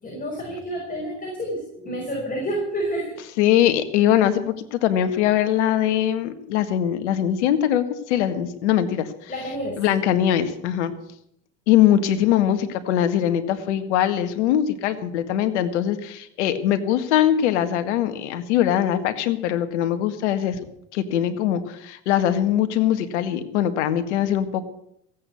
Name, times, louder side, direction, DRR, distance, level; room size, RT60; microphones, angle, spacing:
voice 1, 0.0-3.2 9.3-9.8, equal, 25° left, -2 dB, 5.9 m, -29 dB
voice 2, 3.4-9.1 9.8-10.9 11.7-20.6 20.9-24.7, left 11 dB, 80° left, 10 dB, 1.8 m, -21 dB
16.0 x 8.7 x 8.4 m, 0.72 s
hypercardioid pair, 90°, 34 cm